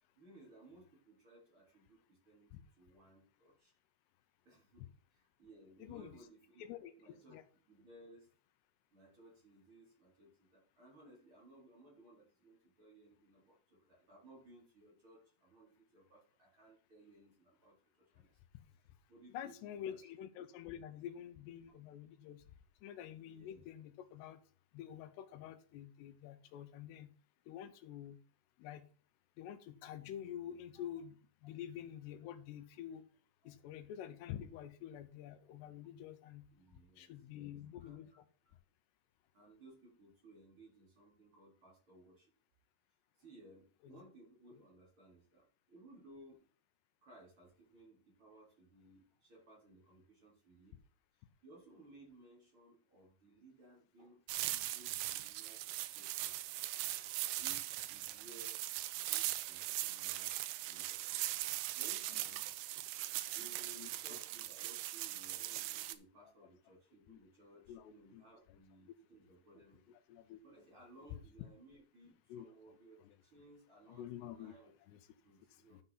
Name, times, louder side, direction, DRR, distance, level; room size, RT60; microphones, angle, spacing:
voice 1, 0.2-3.7 4.5-7.4 7.7-8.3 8.9-18.4 19.1-20.1 23.3-23.6 30.7-30.8 33.4-33.5 36.5-38.2 38.5-38.6 39.3-42.3 43.2-46.4 47.0-50.8 51.4-55.6 55.9-56.6 57.4-58.7 59.0-60.3 60.7-61.0 61.8-62.4 63.3-70.0 70.4-74.7 75.2-75.8, right 1 dB, 30° right, -4 dB, 4.1 m, -61 dB
voice 2, 5.8-6.2 6.6-7.4 19.3-22.4 22.8-24.4 24.7-27.1 27.5-28.2 28.6-28.9 29.4-31.2 31.4-33.0 33.5-36.5 37.0-38.1 43.8-44.0 62.1-62.2 63.7-64.2 66.2-66.3 67.1-67.2 67.7-68.6 69.9-70.4 72.3-73.2 73.9-75.1 75.7-75.8, left 10 dB, 85° left, 10 dB, 2.8 m, -48 dB
sound 1, 54.3-65.9, right 16 dB, 80° right, 2.5 m, -40 dB
12.0 x 5.7 x 4.0 m, 0.39 s
omnidirectional pair, 4.9 m